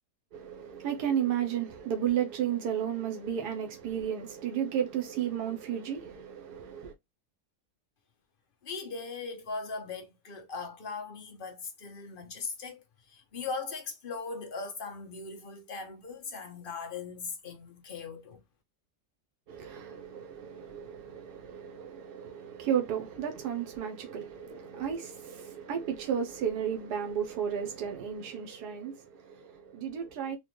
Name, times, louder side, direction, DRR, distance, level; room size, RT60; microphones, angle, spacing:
voice 1, 0.3-6.9 19.5-30.4, right 9 dB, 85° right, 1.4 m, -33 dB
voice 2, 8.6-18.4, left 4 dB, 40° left, 0.9 m, -39 dB
4.2 x 2.4 x 3.1 m
omnidirectional pair, 1.7 m